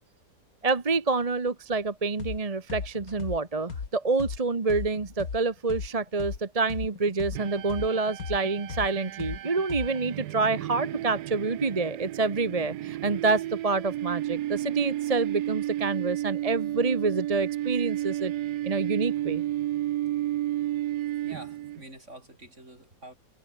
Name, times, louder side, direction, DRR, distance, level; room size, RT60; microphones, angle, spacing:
voice 1, 0.6-18.3 18.6-19.4, right 3 dB, 25° right, 1.1 m, -27 dB
sound 1, 2.2-2.4 2.7-6.4 6.7-10.1, left 5 dB, 60° left, 2.4 m, -36 dB
sound 2, 7.3-21.8, right 14 dB, 75° right, 1.2 m, -32 dB
voice 2, 21.2-23.1, right 1 dB, 45° right, 8.0 m, -46 dB
omnidirectional pair, 1.7 m